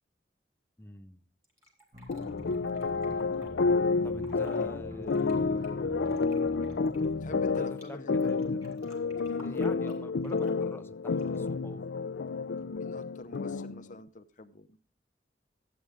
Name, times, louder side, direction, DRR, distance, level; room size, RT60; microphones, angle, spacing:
voice 1, 0.8-1.2 4.0-6.8 7.6-8.9 9.3-12.0, left 1 dB, 15° left, 8 dB, 0.7 m, -46 dB
Fill (with liquid), 1.4-3.5 4.1-4.7 5.0-7.9 8.2-10.6 11.1-11.5, equal, 15° right, 3.6 m, -58 dB
sound 1, 1.9-7.6, left 1 dB, 40° right, 2.9 m, -45 dB
sound 2, 2.1-13.9, left 4 dB, 80° left, 0.5 m, -30 dB
voice 2, 7.2-8.3 9.2-9.6 12.8-14.8, left 2 dB, 45° left, 10 dB, 0.8 m, -47 dB
13.0 x 8.7 x 3.3 m, 0.38 s
head